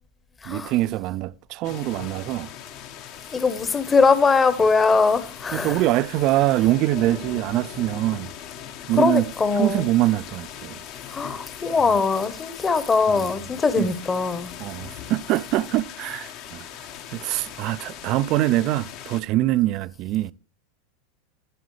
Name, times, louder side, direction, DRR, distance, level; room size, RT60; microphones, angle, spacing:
voice 1, 0.5-2.5 5.5-8.3 8.9-9.3 9.5-10.8 13.1-13.3 13.8-13.9 14.6-16.7 17.1-20.3, right 15 dB, 50° right, 0.4 m, -24 dB
sound 1, 1.6-19.2, left 9 dB, 55° left, 1.3 m, -40 dB
voice 2, 3.3-5.8 9.0-9.9 11.1-14.5, left 4 dB, 20° left, 1.0 m, -21 dB
11.0 x 10.5 x 3.2 m
hypercardioid pair, 100°, 0 cm